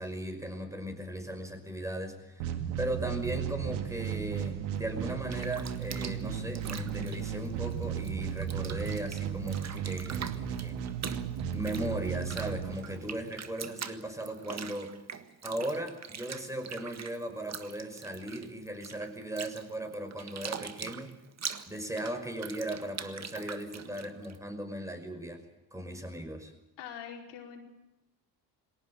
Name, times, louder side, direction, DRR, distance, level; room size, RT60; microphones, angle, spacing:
voice 1, 0.0-2.5 2.8-10.8 11.5-14.9 15.4-21.2 21.7-25.4 25.7-26.5, right 1 dB, 5° right, 6 dB, 5.6 m, -37 dB
sound 1, 2.4-13.3, right 8 dB, 90° right, 2.0 m, -35 dB
Bathtub (filling or washing), 5.1-8.1 8.4-24.4, right 7 dB, 40° right, 1.7 m, -43 dB
voice 2, 26.8-27.6, left 8 dB, 80° left, 2 dB, 4.9 m, -43 dB
20.0 x 17.5 x 9.8 m, 0.91 s
supercardioid pair, 70°, 41 cm